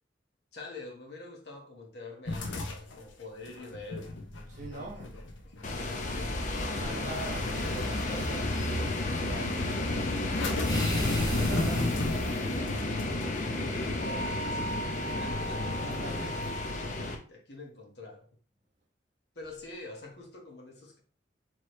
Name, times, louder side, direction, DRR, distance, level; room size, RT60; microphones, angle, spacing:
voice 1, 0.5-4.1 4.7-5.1 5.4-7.2 12.7-15.8 17.3-18.3 19.3-21.0, left 2 dB, 60° left, 1.2 m, -46 dB
sound 1, 2.3-8.5 8.8-9.5 10.2-16.5, left 2 dB, 85° left, 0.8 m, -37 dB
voice 2, 4.5-5.2 6.6-10.4 11.1-11.9 15.8-16.5, right 2 dB, 45° right, 1.4 m, -42 dB
sound 2, 5.6-17.2, left 2 dB, 40° left, 0.6 m, -32 dB
sound 3, 7.1-8.8 10.6-12.5, left 1 dB, 20° left, 1.0 m, -38 dB
4.7 x 3.0 x 3.1 m
head